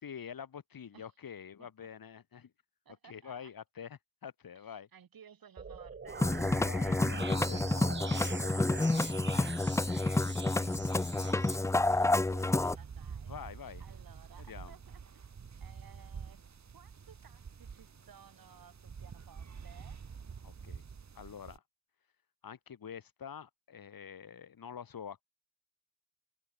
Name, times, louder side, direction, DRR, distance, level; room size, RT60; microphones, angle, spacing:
voice 1, 0.0-2.5 3.0-4.9 6.6-7.6 13.3-13.8 14.4-14.7 20.4-20.8 21.1-21.6 22.4-25.2, left 7 dB, 80° left, 4.6 m, -46 dB
voice 2, 2.9-3.5 4.5-6.8 7.7-7.8 8.5-13.3 13.8-15.3 15.6-16.4 16.7-20.0, right 8 dB, 85° right, 5.3 m, -58 dB
sound 1, 5.6-11.6, right 5 dB, 30° right, 1.2 m, -43 dB
Musical instrument, 6.1-12.8, left 2 dB, 10° left, 0.3 m, -29 dB
sound 2, 8.9-21.6, right 6 dB, 55° right, 3.1 m, -49 dB
open air
wide cardioid pair, 145°, 34 cm